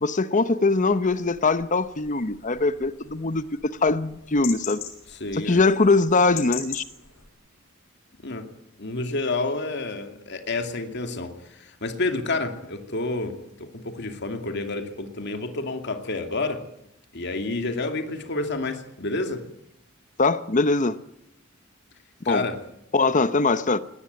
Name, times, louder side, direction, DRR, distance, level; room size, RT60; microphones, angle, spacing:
voice 1, 0.0-3.5 3.8-4.8 5.4-6.8 20.2-21.0 22.3-22.5 22.9-23.8, left 3 dB, 40° left, 13 dB, 0.9 m, -22 dB
sound 1, 0.7-7.3, left 9 dB, 85° left, 6.1 m, -41 dB
voice 2, 5.1-5.6 8.2-8.5 8.8-16.7 17.1-19.4 22.2-22.6, left 2 dB, 55° left, 6 dB, 2.6 m, -29 dB
20.5 x 18.5 x 9.4 m, 0.79 s
head